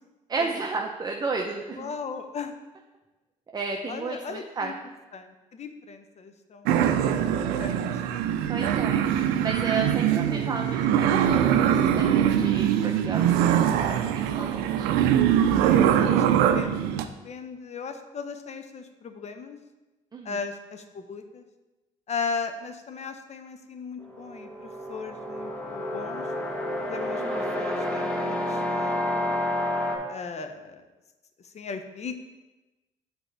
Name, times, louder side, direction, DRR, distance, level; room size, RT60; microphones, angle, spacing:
voice 1, 0.3-1.9 3.5-4.7 8.5-14.9 20.1-20.4 27.2-27.6, right 4 dB, 25° right, 1 dB, 0.7 m, -33 dB
voice 2, 1.7-2.5 3.9-4.7 5.1-6.8 7.3-7.9 15.6-16.3 16.5-17.0 17.2-19.6 20.2-21.5 22.1-26.3 26.9-29.4 30.1-30.8 31.4-32.1, left 5 dB, 45° left, 7 dB, 0.7 m, -37 dB
sound 1, 6.7-17.0, right 9 dB, 90° right, 0.4 m, -22 dB
sound 2, 24.0-30.0, left 1 dB, 5° left, 1.1 m, -29 dB
7.8 x 4.4 x 3.4 m, 1.1 s
supercardioid pair, 70°, 16 cm